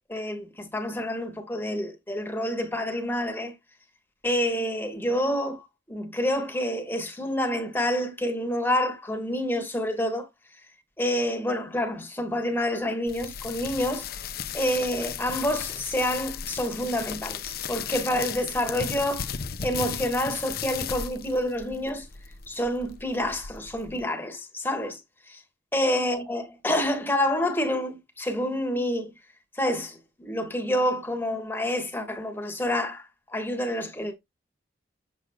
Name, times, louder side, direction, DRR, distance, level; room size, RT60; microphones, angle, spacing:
voice 1, 0.1-3.5 4.2-10.3 11.0-14.1 14.5-19.3 19.6-22.1 22.5-25.0 25.3-25.4 25.7-29.1 29.5-34.1, left 1 dB, 10° left, 1.3 m, -28 dB
sound 1, 13.1-24.0, left 7 dB, 50° left, 0.6 m, -36 dB
7.7 x 6.3 x 2.2 m
head